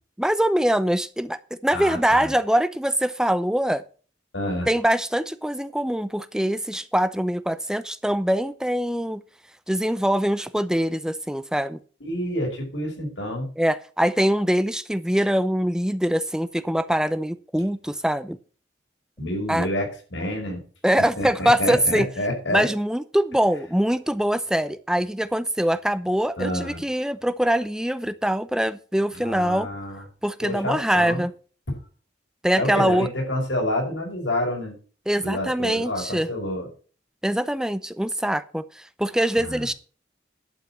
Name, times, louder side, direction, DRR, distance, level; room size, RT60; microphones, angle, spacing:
voice 1, 0.2-3.8 4.7-9.2 9.7-11.8 13.6-18.4 19.5-19.7 20.8-22.1 22.5-29.7 30.2-31.3 32.4-33.1 35.1-36.3 37.2-39.7, equal, 5° right, 14 dB, 0.5 m, -23 dB
voice 2, 1.7-2.3 4.3-4.7 12.0-13.5 19.2-20.6 21.2-22.7 26.4-26.8 29.1-30.0 30.4-31.2 32.6-34.7 35.2-36.7 39.4-39.6, left 1 dB, 85° left, 0 dB, 5.4 m, -28 dB
11.5 x 5.5 x 7.4 m, 0.39 s
head